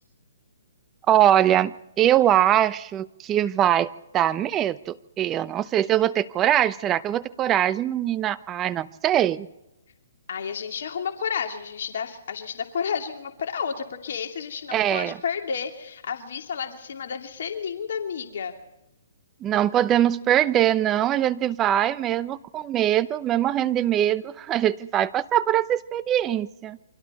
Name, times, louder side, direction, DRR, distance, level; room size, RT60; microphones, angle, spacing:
voice 1, 1.1-9.5 14.7-15.2 19.4-26.8, right 11 dB, 20° right, 15 dB, 0.8 m, -22 dB
voice 2, 10.3-18.5, left 6 dB, 60° left, 4 dB, 2.5 m, -31 dB
28.5 x 24.5 x 4.2 m, 0.93 s
hypercardioid pair, 145°, 0 cm